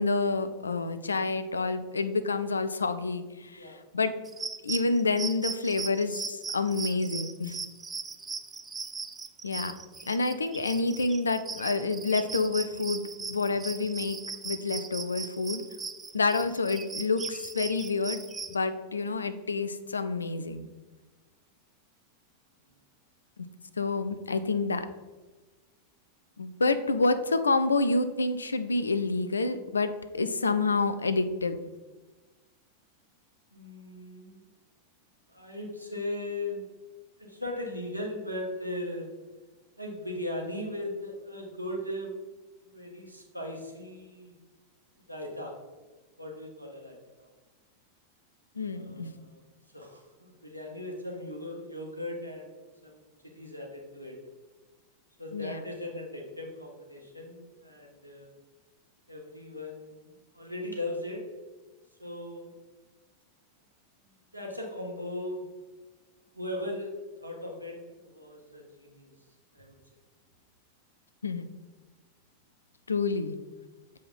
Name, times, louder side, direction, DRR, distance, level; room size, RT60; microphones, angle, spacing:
voice 1, 0.0-4.1 4.6-7.6 9.4-9.7 10.1-13.0 13.3-14.2 14.4-15.6 16.1-18.2 18.5-20.7 23.8-24.9 26.4-31.6 48.6-49.1 55.3-55.6 71.2-71.5 72.9-73.4, left 3 dB, 75° left, 11 dB, 0.5 m, -28 dB
sound 1, 4.2-18.5, right 5 dB, 15° right, 0.4 m, -39 dB
voice 2, 33.5-34.4 35.3-36.7 37.2-39.1 39.8-42.2 42.6-44.3 45.0-45.5 46.2-47.3 48.6-49.4 49.7-54.1 55.2-58.3 59.1-61.2 62.0-62.5 64.3-65.4 66.3-69.1 69.5-69.7, left 1 dB, 90° right, -1 dB, 1.5 m, -38 dB
7.5 x 4.8 x 4.2 m, 1.3 s
figure-of-eight pair, 90°, 0 cm